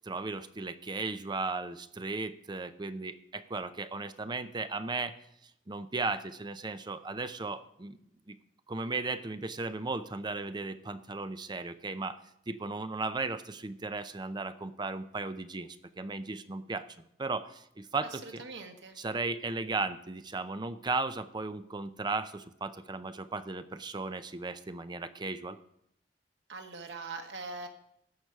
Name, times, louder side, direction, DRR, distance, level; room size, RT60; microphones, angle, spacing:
voice 1, 0.0-5.1 5.7-8.0 8.3-8.4 8.7-12.2 12.5-16.9 17.2-18.4 19.0-25.6, right 3 dB, 25° right, 11 dB, 0.6 m, -36 dB
voice 2, 18.1-19.0 26.5-27.7, right 3 dB, 85° right, 4 dB, 1.6 m, -42 dB
13.5 x 5.0 x 8.0 m, 0.76 s
head